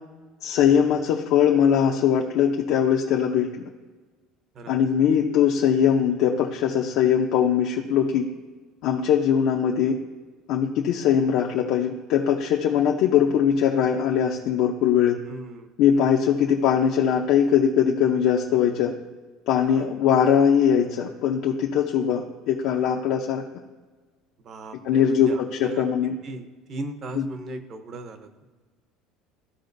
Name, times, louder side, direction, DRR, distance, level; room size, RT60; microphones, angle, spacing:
voice 1, 0.4-3.6 4.7-8.2 8.8-10.0 10.5-15.2 15.8-18.9 19.5-23.4 24.8-26.1 27.1-27.3, left 8 dB, 60° left, -1 dB, 0.7 m, -21 dB
voice 2, 15.3-15.7 19.6-19.9 24.4-25.9 26.2-28.5, right 2 dB, 35° right, 8 dB, 0.8 m, -38 dB
14.0 x 4.9 x 2.7 m, 1.3 s
cardioid pair, 155°, 0 cm